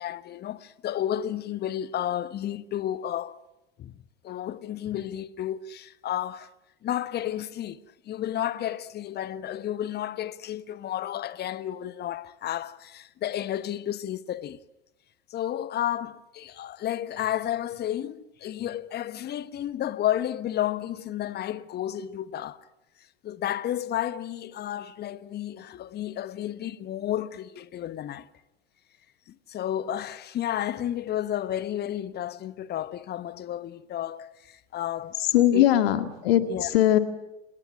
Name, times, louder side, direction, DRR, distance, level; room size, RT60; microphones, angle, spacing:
voice 1, 0.0-3.4 3.8-6.5 6.8-14.6 15.3-22.6 23.2-28.3 29.3-35.2 35.5-35.6 36.5-36.7, left 11 dB, 30° left, 1.2 m, -32 dB
voice 2, 35.2-37.0, left 12 dB, 60° left, 2.1 m, -21 dB
27.0 x 21.0 x 8.9 m
figure-of-eight pair, 80°, 34 cm